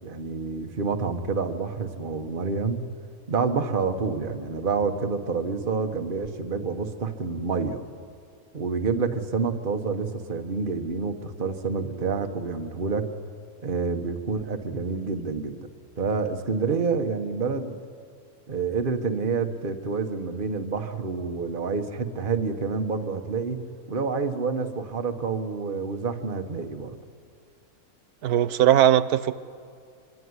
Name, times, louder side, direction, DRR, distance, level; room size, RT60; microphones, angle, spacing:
voice 1, 0.0-2.8 3.3-7.8 8.5-13.1 13.6-15.7 16.0-17.8 18.5-23.6 23.9-27.0, right 4 dB, 35° right, 6 dB, 1.5 m, -28 dB
voice 2, 28.2-29.4, right 11 dB, 80° right, 15 dB, 1.3 m, -19 dB
24.5 x 24.0 x 9.7 m, 2.3 s
omnidirectional pair, 1.6 m